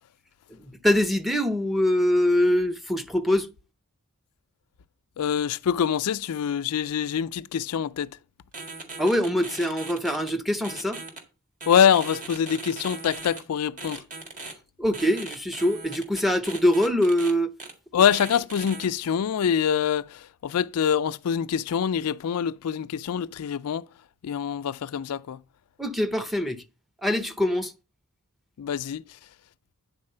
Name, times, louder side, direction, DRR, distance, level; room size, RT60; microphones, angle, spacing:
voice 1, 0.5-3.5 9.0-11.0 14.8-17.5 25.8-26.6 27.0-27.7, left 1 dB, ahead, 0.6 m, -23 dB
voice 2, 5.2-8.1 11.7-14.0 17.9-23.9 24.2-25.4 28.6-29.2, left 8 dB, 85° left, 0.4 m, -25 dB
sound 1, 8.5-10.3 10.6-11.2 11.6-13.4 13.8-14.5 14.9-17.3 17.6-17.7 18.1-18.9, right 3 dB, 35° right, 1.9 m, -39 dB
9.7 x 4.0 x 6.5 m
head